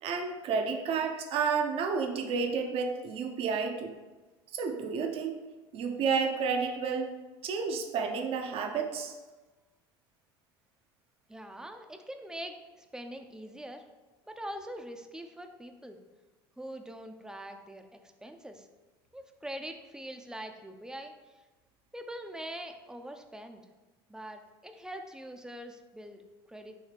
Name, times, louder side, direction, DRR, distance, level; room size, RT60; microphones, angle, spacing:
voice 1, 0.0-3.9 4.5-5.4 5.7-7.1 7.4-9.1, right 5 dB, 50° right, 4 dB, 0.9 m, -31 dB
voice 2, 11.3-13.8 14.3-16.0 16.6-18.7 19.1-21.4 21.9-23.7 24.1-26.2 26.5-26.7, right 1 dB, 5° right, 5 dB, 0.7 m, -43 dB
9.4 x 3.2 x 3.4 m, 1.2 s
hypercardioid pair, 70°, 12 cm